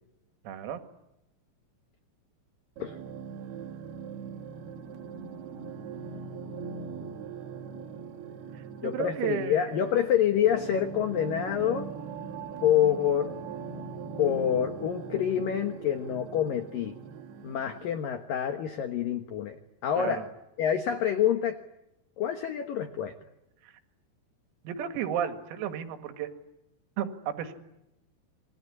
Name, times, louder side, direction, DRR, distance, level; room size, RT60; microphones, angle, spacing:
voice 1, 0.5-0.8 8.6-9.9 20.0-20.3 23.6-23.7 24.6-26.3 27.0-27.5, right 9 dB, 85° right, 7 dB, 4.7 m, -33 dB
sound 1, 2.8-18.0, right 6 dB, 55° right, 3.6 m, -41 dB
voice 2, 8.8-11.9 12.6-13.4 14.2-17.0 17.4-20.2 20.6-21.6 22.2-23.1, left 9 dB, 75° left, 7 dB, 2.0 m, -27 dB
27.5 x 22.0 x 9.8 m, 0.90 s
omnidirectional pair, 6.0 m